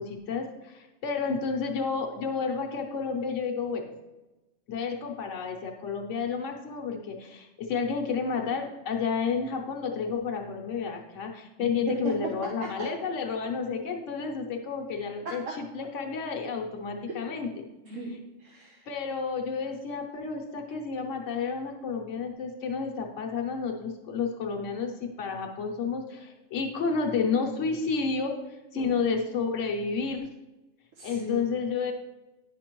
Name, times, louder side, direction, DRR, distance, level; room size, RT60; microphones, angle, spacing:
voice 1, 0.0-3.9 4.7-17.5 18.9-28.3 28.7-30.3 31.0-31.9, left 5 dB, 75° left, 2 dB, 1.2 m, -31 dB
voice 2, 11.6-11.9 12.8-12.9 17.8-18.9 28.7-28.9 31.0-31.4, right 2 dB, 90° right, -1 dB, 1.3 m, -38 dB
10.0 x 5.8 x 3.0 m, 1.0 s
omnidirectional pair, 1.3 m